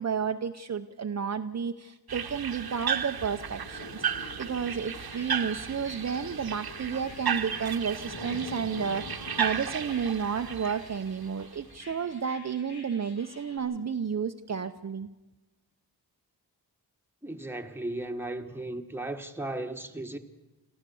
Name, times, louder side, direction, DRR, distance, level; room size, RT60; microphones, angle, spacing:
voice 1, 0.0-4.0 4.4-15.1, right 6 dB, 45° right, 0.7 m, -31 dB
sound 1, 2.1-11.8, right 7 dB, 70° right, 1.1 m, -34 dB
sound 2, 3.1-10.0, left 4 dB, 50° left, 1.6 m, -45 dB
sound 3, 4.1-13.6, left 2 dB, 80° left, 4.3 m, -53 dB
voice 2, 17.2-20.2, right 2 dB, 5° right, 1.4 m, -36 dB
27.5 x 14.5 x 7.0 m
wide cardioid pair, 105°, 39 cm